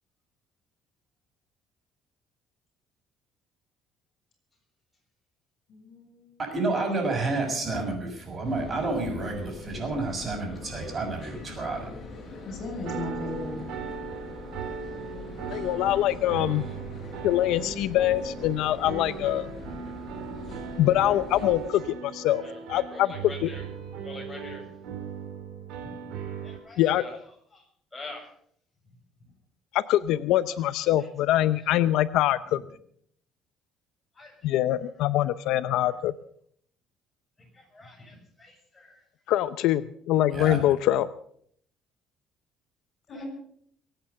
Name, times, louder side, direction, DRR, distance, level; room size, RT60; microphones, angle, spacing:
voice 1, 5.7-6.4 12.5-13.6 43.1-43.2, left 3 dB, 50° left, 6 dB, 7.1 m, -37 dB
voice 2, 6.5-11.9 13.2-13.3 40.3-40.6, right 3 dB, 30° right, 2 dB, 6.4 m, -30 dB
sound 1, 8.4-21.7, left 3 dB, 35° left, 7.5 m, -42 dB
sound 2, 12.8-26.6, right 6 dB, 80° right, 3.3 m, -38 dB
voice 3, 15.5-16.6 17.2-19.5 20.8-22.4 22.7-23.1 23.4-23.5 26.8-27.0 29.7-32.6 34.4-36.1 39.3-39.8 40.1-41.1, left 13 dB, 80° left, 14 dB, 0.6 m, -24 dB
voice 4, 22.4-23.6 24.0-24.7 25.8-26.1 26.4-27.2 27.5-27.7 27.9-28.3 29.2-29.3 31.6-31.7 32.5-32.6 34.1-34.3 35.7-35.9 37.4-39.0 43.1-43.2, left 2 dB, 15° left, 0 dB, 6.7 m, -45 dB
23.0 x 9.0 x 6.8 m, 0.64 s
cardioid pair, 130°, 0 cm